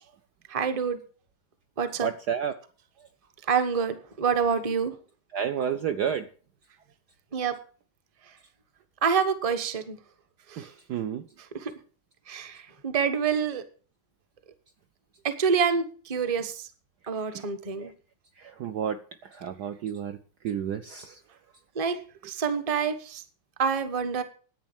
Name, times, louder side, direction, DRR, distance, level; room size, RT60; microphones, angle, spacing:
voice 1, 0.5-1.0 1.8-2.1 3.5-4.9 7.3-7.5 9.0-10.0 10.5-10.6 11.6-11.7 12.3-12.6 12.8-13.6 15.2-16.6 17.1-17.9 21.7-22.0 22.2-23.2 23.6-24.2, right 6 dB, 25° right, 9 dB, 0.8 m, -27 dB
voice 2, 2.0-2.5 5.3-6.3 10.6-11.3 17.2-17.5 17.8-17.9 18.4-20.2 20.4-21.2, right 8 dB, 65° right, 8 dB, 1.1 m, -31 dB
10.5 x 9.1 x 7.2 m, 0.41 s
omnidirectional pair, 2.4 m